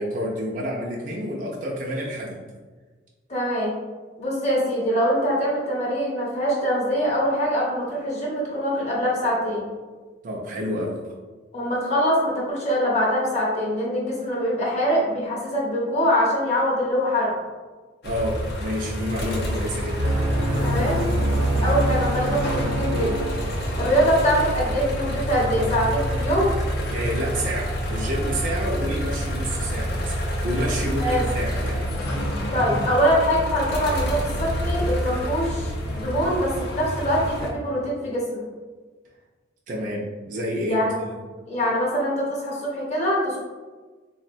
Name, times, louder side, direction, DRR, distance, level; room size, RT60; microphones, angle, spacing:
voice 1, 0.0-2.4 10.2-11.1 18.0-20.1 26.9-30.2 30.4-31.9 39.7-41.1, equal, 45° right, -3 dB, 0.4 m, -29 dB
voice 2, 3.3-3.7 4.2-9.6 11.5-17.3 20.6-21.2 21.6-23.1 23.8-26.5 31.0-31.3 32.5-38.4 40.7-41.0 41.5-43.4, equal, 35° left, -5 dB, 0.8 m, -23 dB
sound 1, 18.0-37.5, equal, 55° left, 0.4 m, -28 dB
sound 2, 20.0-24.1, equal, 90° right, 0.6 m, -25 dB
3.6 x 2.1 x 2.5 m, 1.4 s
head